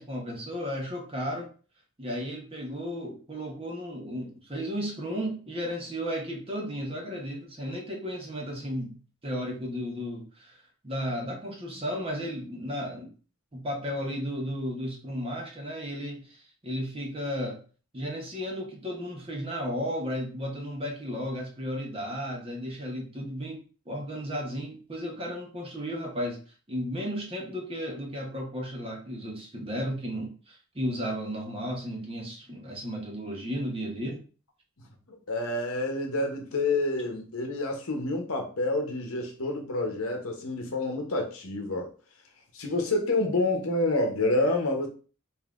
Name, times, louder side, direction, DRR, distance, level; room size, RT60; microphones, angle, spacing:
voice 1, 0.0-1.5 2.0-10.6 10.8-13.1 13.5-17.6 17.9-26.4 26.7-34.2, equal, 25° right, 0.9 m, -34 dB
voice 2, 35.1-41.9 42.5-44.9, left 2 dB, 70° left, 0.9 m, -28 dB
5.4 x 2.7 x 2.5 m
head